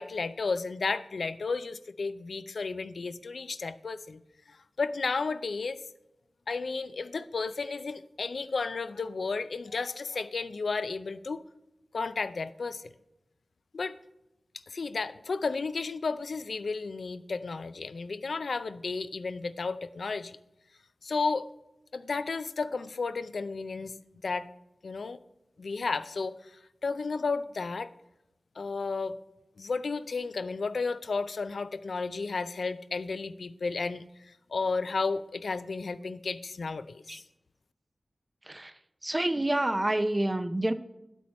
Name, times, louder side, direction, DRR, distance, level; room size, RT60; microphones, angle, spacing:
voice 1, 0.0-4.2 4.8-5.8 6.5-11.4 11.9-12.8 13.7-14.0 14.7-20.4 21.0-21.5 21.9-24.0 24.2-24.5 24.8-25.2 25.6-26.3 26.8-27.9 28.6-29.1 29.6-34.0 34.5-37.2, left 4 dB, 80° left, 12 dB, 0.4 m, -33 dB
voice 2, 39.0-40.7, right 1 dB, 25° right, 11 dB, 0.6 m, -28 dB
9.2 x 8.2 x 4.2 m, 0.90 s
wide cardioid pair, 65°, 0 cm